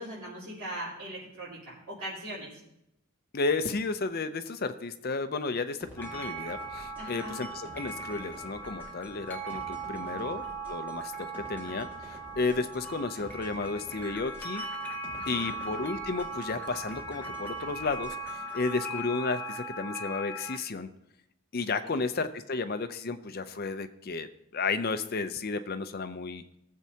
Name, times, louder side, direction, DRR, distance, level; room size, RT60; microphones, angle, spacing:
voice 1, 0.0-2.5 7.0-7.4 9.8-10.3 15.1-15.6 21.8-22.0, equal, 70° right, -11 dB, 4.3 m, -40 dB
voice 2, 3.3-11.1 11.5-14.6 15.2-20.9 21.5-24.3 24.5-26.4, left 3 dB, 45° left, 10 dB, 0.5 m, -33 dB
sound 1, 5.8-18.7, left 1 dB, 10° right, 2.0 m, -50 dB
sound 2, 6.0-20.6, right 2 dB, 5° left, 0.9 m, -39 dB
18.5 x 7.3 x 2.8 m, 0.80 s
head